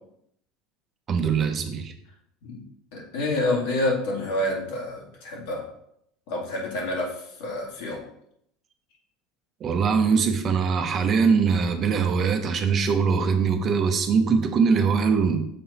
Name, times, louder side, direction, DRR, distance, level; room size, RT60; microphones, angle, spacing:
voice 1, 1.1-1.9 9.6-15.4, right 5 dB, 40° right, 6 dB, 0.9 m, -22 dB
voice 2, 2.9-5.6 6.3-8.0, left 1 dB, 75° left, -2 dB, 2.1 m, -28 dB
6.5 x 4.0 x 4.3 m, 0.73 s
hypercardioid pair, 90°, 0 cm